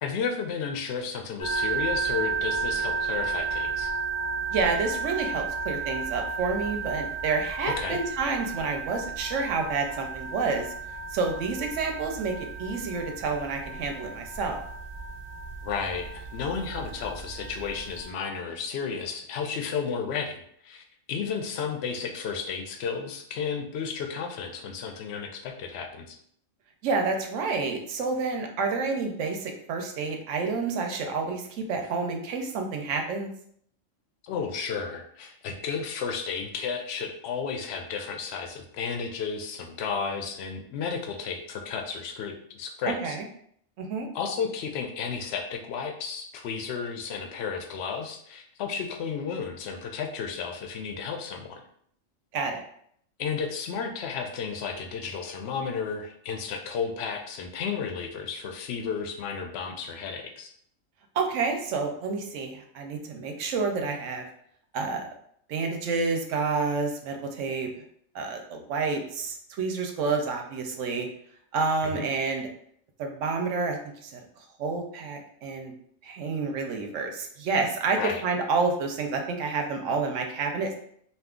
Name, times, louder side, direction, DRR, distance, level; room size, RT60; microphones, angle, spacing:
voice 1, 0.0-3.9 7.8-8.0 15.6-26.2 34.2-43.2 44.1-51.6 53.2-60.5 71.8-72.1 78.0-78.2, left 6 dB, 65° left, 4 dB, 0.7 m, -33 dB
sound 1, 1.4-18.1, right 5 dB, 10° right, 1.0 m, -33 dB
voice 2, 4.5-10.7 11.1-14.6 26.8-33.3 42.9-43.2 43.8-44.1 52.3-52.6 61.1-64.2 64.7-65.1 65.5-67.7 68.1-71.1 71.5-72.5 73.0-74.2 74.6-75.7 76.0-80.7, right 4 dB, 70° right, 4 dB, 0.9 m, -29 dB
2.6 x 2.3 x 3.6 m, 0.66 s
omnidirectional pair, 1.4 m